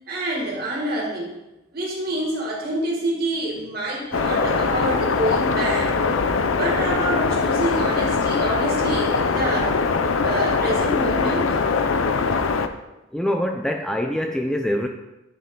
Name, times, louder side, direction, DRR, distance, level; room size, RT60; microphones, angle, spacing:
voice 1, 0.1-1.3 1.7-5.9 6.5-9.8 10.2-11.6, right 1 dB, 50° right, -3 dB, 2.2 m, -27 dB
sound 1, 4.1-12.7, left 4 dB, 90° left, 0.6 m, -22 dB
voice 2, 13.1-14.9, equal, 5° left, 3 dB, 0.4 m, -24 dB
9.9 x 5.6 x 3.8 m, 0.98 s
head